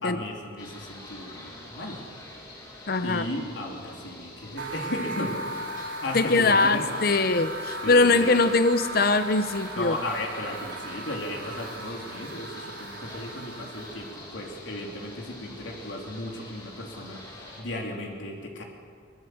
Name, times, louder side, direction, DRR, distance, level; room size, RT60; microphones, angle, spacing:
voice 1, 0.0-2.0 3.0-6.9 7.8-8.5 9.8-18.6, left 1 dB, 80° left, 0 dB, 3.0 m, -35 dB
sound 1, 0.6-17.6, left 1 dB, 25° left, 5.6 m, -45 dB
voice 2, 2.9-3.2 6.1-10.0, left 3 dB, 50° left, 11 dB, 0.7 m, -22 dB
sound 2, 4.6-14.3, right 1 dB, 85° right, 3.1 m, -37 dB
23.0 x 21.0 x 7.7 m, 2.2 s
head